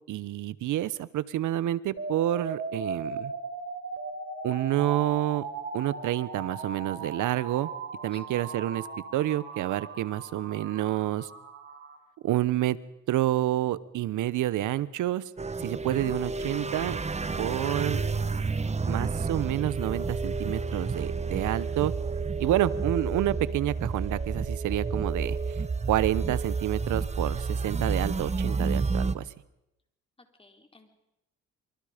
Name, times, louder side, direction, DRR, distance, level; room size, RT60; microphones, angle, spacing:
voice 1, 0.1-3.3 4.4-5.4 5.7-7.7 8.0-8.9 9.1-11.3 12.2-12.8 13.1-15.2 15.6-17.0 17.4-18.0 18.9-21.9 22.4-25.6 25.9-29.3, right 14 dB, 80° right, 18 dB, 1.0 m, -28 dB
sound 1, 2.0-12.0, right 4 dB, 45° right, 4.1 m, -38 dB
sound 2, 15.4-29.1, right 4 dB, 20° right, 1.0 m, -30 dB
voice 2, 30.2-30.9, left 2 dB, 20° left, 5 dB, 3.9 m, -56 dB
25.5 x 24.5 x 5.1 m, 0.87 s
cardioid pair, 90°, 30 cm